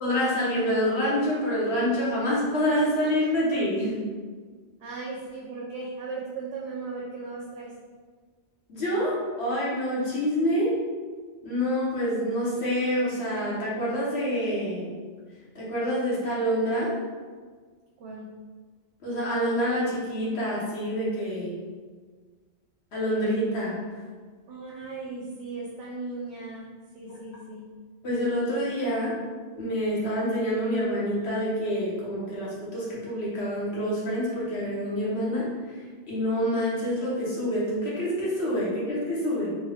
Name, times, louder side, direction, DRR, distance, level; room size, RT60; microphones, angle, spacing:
voice 1, 0.0-4.0 8.7-10.8 11.4-14.9 15.5-16.9 19.0-21.6 22.9-23.8 28.0-29.2 29.6-35.5 36.1-39.6, equal, 70° left, -6 dB, 1.3 m, -27 dB
voice 2, 4.8-7.7 18.0-18.3 24.5-27.6, right 3 dB, 75° right, -3 dB, 0.8 m, -37 dB
3.3 x 3.2 x 2.3 m, 1.5 s
omnidirectional pair, 1.1 m